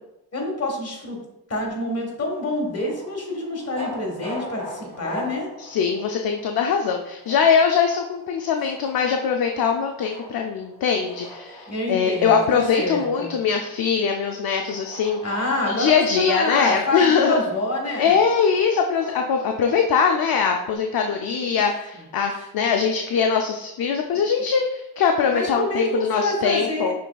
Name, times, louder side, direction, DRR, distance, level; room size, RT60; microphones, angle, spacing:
voice 1, 0.3-1.2 1.5-5.5 11.7-13.3 15.2-18.1 21.2-21.6 21.9-22.0 25.3-26.9, left 1 dB, 35° left, 0 dB, 1.5 m, -27 dB
sound 1, 2.3-20.8, equal, 15° left, 1.6 m, -42 dB
voice 2, 5.6-15.2 15.7-17.4 18.0-26.9, left 6 dB, 60° left, 3 dB, 0.5 m, -22 dB
6.4 x 3.3 x 2.3 m, 0.88 s
cardioid pair, 85°, 42 cm